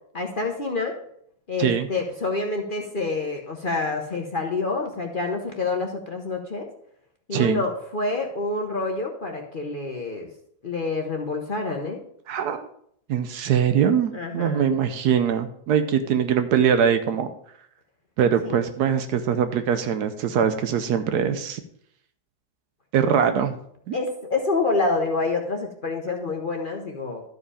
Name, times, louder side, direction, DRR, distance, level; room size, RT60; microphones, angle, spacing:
voice 1, 0.1-1.0 1.5-6.7 7.3-10.3 10.6-12.0 14.1-14.7 18.4-18.6 23.9-27.2, left 3 dB, 40° left, 2 dB, 0.9 m, -27 dB
voice 2, 7.3-7.6 12.3-12.7 13.1-17.3 18.2-21.6 22.9-23.5 23.9-24.0, right 8 dB, 85° right, 9 dB, 1.3 m, -22 dB
12.5 x 5.0 x 4.9 m, 0.68 s
omnidirectional pair, 1.7 m